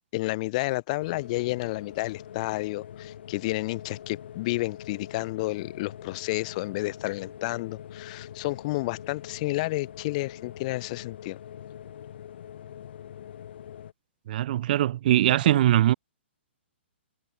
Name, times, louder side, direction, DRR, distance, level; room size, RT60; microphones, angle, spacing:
voice 1, 0.1-11.4, left 21 dB, 35° left, 0.9 m, -31 dB
sound 1, 1.0-13.9, left 10 dB, 60° left, 3.5 m, -44 dB
voice 2, 14.3-15.9, right 13 dB, 45° right, 0.6 m, -21 dB
hypercardioid pair, 145°, 6 cm